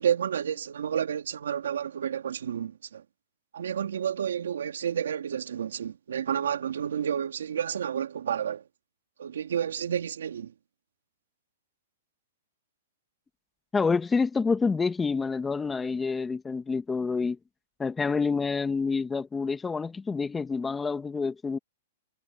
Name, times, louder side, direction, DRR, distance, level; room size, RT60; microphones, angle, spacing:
voice 1, 0.0-3.0 3.5-8.7 9.2-10.5, right 8 dB, 85° right, 2.9 m, -30 dB
voice 2, 13.7-17.4 17.8-21.6, left 4 dB, 10° left, 1.7 m, -28 dB
hypercardioid pair, 145°, 0 cm